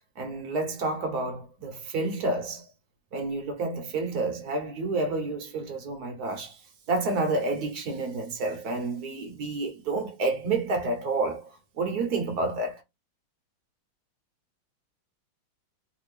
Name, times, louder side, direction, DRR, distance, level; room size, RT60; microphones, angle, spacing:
voice 1, 0.2-2.7 3.1-6.6 6.9-11.5 11.8-12.8, right 3 dB, 60° right, 1.1 m, -29 dB
3.3 x 2.6 x 3.1 m
omnidirectional pair, 2.2 m